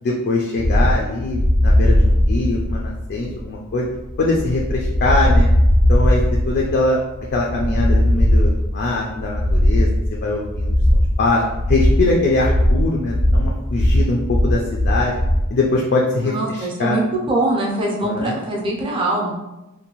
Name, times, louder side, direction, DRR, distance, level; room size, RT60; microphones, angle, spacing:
voice 1, 0.0-3.9 4.2-5.5 5.9-7.0 7.3-9.9 10.2-11.4 11.7-15.1 15.5-17.0 18.0-18.4, left 2 dB, 50° left, -2 dB, 0.3 m, -22 dB
sound 1, 0.6-15.5, left 1 dB, 80° left, 0.7 m, -18 dB
voice 2, 16.2-19.3, right 2 dB, 25° right, -3 dB, 0.5 m, -22 dB
2.6 x 2.2 x 2.9 m, 1.0 s
head